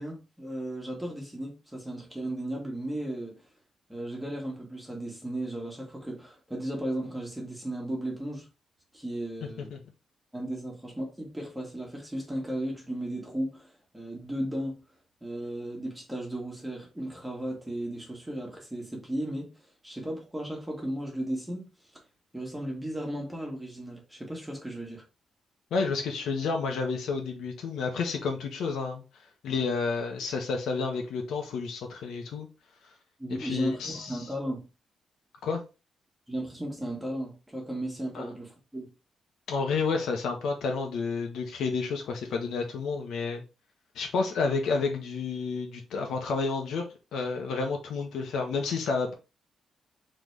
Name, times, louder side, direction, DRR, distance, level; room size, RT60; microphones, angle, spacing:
voice 1, 0.0-3.3 3.9-8.5 8.9-9.7 10.3-14.8 15.2-21.7 22.3-25.0 33.2-34.6 36.3-38.9, right 1 dB, 5° right, 1.5 m, -35 dB
voice 2, 25.7-29.0 29.4-32.5 33.3-34.2 35.4-35.6 38.1-38.3 39.5-43.4 43.9-46.8 47.1-49.1, left 4 dB, 90° left, 1.1 m, -30 dB
3.9 x 3.4 x 3.3 m
wide cardioid pair, 155°, 0 cm